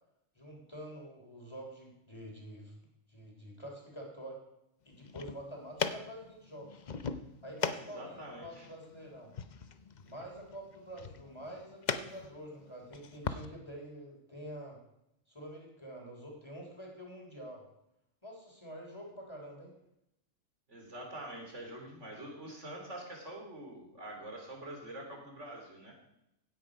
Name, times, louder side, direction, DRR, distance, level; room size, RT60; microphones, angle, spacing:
voice 1, 0.4-2.7 3.1-4.4 4.9-6.7 7.4-9.3 10.1-14.8 15.3-17.7 18.2-19.7, right 1 dB, 20° left, 0 dB, 3.6 m, -47 dB
sound 1, 4.9-13.4, left 5 dB, 45° left, 0.6 m, -40 dB
voice 2, 7.8-8.7 20.7-25.9, right 1 dB, 55° right, 1 dB, 3.8 m, -45 dB
16.0 x 9.6 x 5.1 m, 0.81 s
omnidirectional pair, 1.5 m